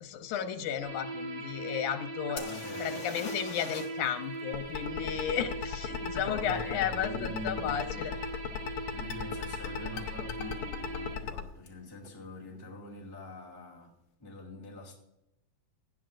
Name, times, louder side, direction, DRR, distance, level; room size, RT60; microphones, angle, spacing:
voice 1, 0.0-2.4 2.8-8.1, left 9 dB, 85° left, 8 dB, 2.4 m, -34 dB
sound 1, 0.8-11.2, right 2 dB, 75° right, 2.8 m, -40 dB
voice 2, 2.3-3.0 6.1-8.1 8.9-13.9 14.2-14.9, left 1 dB, 10° left, -4 dB, 2.1 m, -43 dB
sound 2, 2.4-4.1 4.3-4.4 7.8-7.9 8.6-8.8 9.0-9.6 11.7-11.8 12.0-12.1, left 5 dB, 45° left, 2.1 m, -44 dB
sound 3, 4.5-11.4, left 8 dB, 65° left, 1.6 m, -35 dB
17.5 x 10.5 x 2.6 m, 0.86 s
omnidirectional pair, 3.4 m